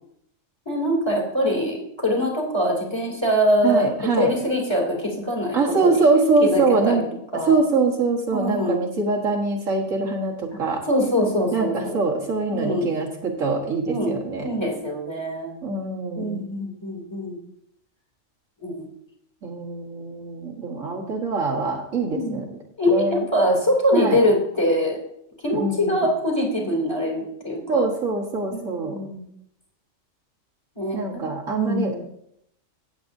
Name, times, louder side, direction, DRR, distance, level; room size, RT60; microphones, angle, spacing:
voice 1, 0.7-1.8 2.0-3.9 4.2-6.0 6.4-7.0 7.3-7.6 8.3-8.8 10.9-11.9 12.5-12.9 13.9-14.2 14.4-15.5 16.1-17.4 18.6-18.8 22.1-22.5 22.8-25.0 25.4-27.9 28.5-29.2 30.8-31.2 31.6-32.0, equal, 20° left, -3 dB, 2.7 m, -23 dB
voice 2, 3.6-4.3 5.5-7.0 7.4-10.8 11.5-14.5 15.6-16.4 19.4-22.5 22.9-23.3 23.9-24.2 25.5-26.1 27.7-29.0 30.9-32.0, right 3 dB, 70° right, -1 dB, 1.8 m, -23 dB
16.0 x 8.0 x 2.7 m, 0.74 s
omnidirectional pair, 1.4 m